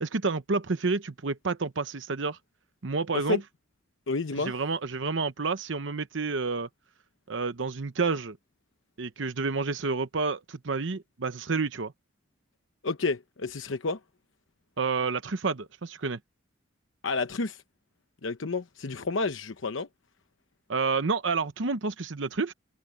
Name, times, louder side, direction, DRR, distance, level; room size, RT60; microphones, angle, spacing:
voice 1, 0.0-2.4 2.8-3.4 4.4-6.7 7.3-8.4 9.0-11.9 14.8-16.2 20.7-22.5, right 4 dB, 70° right, 0.9 m, -29 dB
voice 2, 4.1-4.6 12.8-14.0 17.0-17.6 18.2-19.9, left 3 dB, 80° left, 0.9 m, -30 dB
head